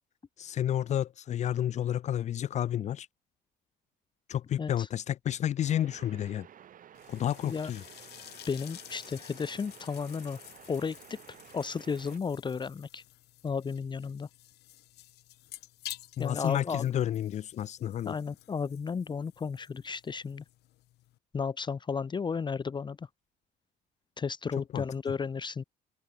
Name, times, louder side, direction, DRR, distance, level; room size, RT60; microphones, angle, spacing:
voice 1, 0.4-3.1 4.3-6.5 7.1-7.8 16.2-18.1 24.7-24.8, left 11 dB, 45° left, 0.4 m, -30 dB
sound 1, 5.6-12.2, right 10 dB, 55° right, 6.8 m, -53 dB
sound 2, 6.9-21.2, left 16 dB, 80° left, 4.6 m, -51 dB
voice 2, 8.5-10.4 10.7-11.2 11.5-13.0 13.4-14.3 16.2-16.9 18.0-20.4 21.3-23.1 24.2-25.6, left 5 dB, 25° left, 1.0 m, -33 dB
open air
cardioid pair, 110°, 17 cm